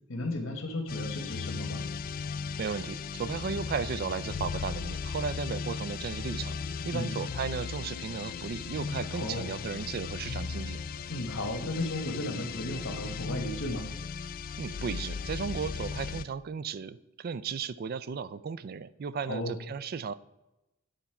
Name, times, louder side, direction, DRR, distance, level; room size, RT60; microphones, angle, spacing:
voice 1, 0.1-1.8 6.9-7.1 9.1-9.5 11.1-13.9 19.3-19.6, left 1 dB, 75° left, 5 dB, 1.4 m, -34 dB
sound 1, 0.9-16.3, left 5 dB, 45° left, 0.3 m, -36 dB
voice 2, 2.6-6.6 6.8-10.8 14.6-20.1, right 6 dB, 45° right, 16 dB, 0.3 m, -35 dB
9.3 x 4.2 x 5.7 m, 0.93 s
head